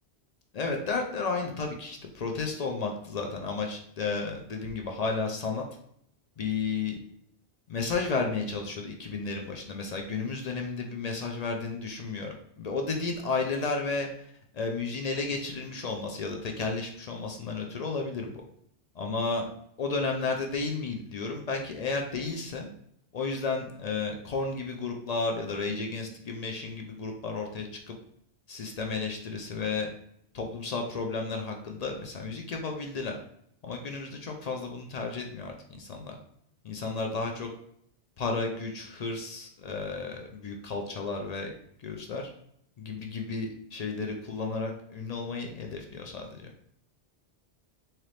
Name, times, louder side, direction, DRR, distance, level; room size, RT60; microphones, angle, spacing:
voice 1, 0.5-5.7 6.4-7.0 7.7-14.1 14.5-18.4 18.9-19.5 19.8-22.7 23.1-27.9 28.5-29.9 30.3-33.2 33.6-36.1 36.6-37.5 38.2-41.5 41.8-42.3 42.8-46.5, left 4 dB, 60° left, 2 dB, 0.4 m, -33 dB
3.8 x 2.9 x 3.2 m, 0.71 s
omnidirectional pair, 1.2 m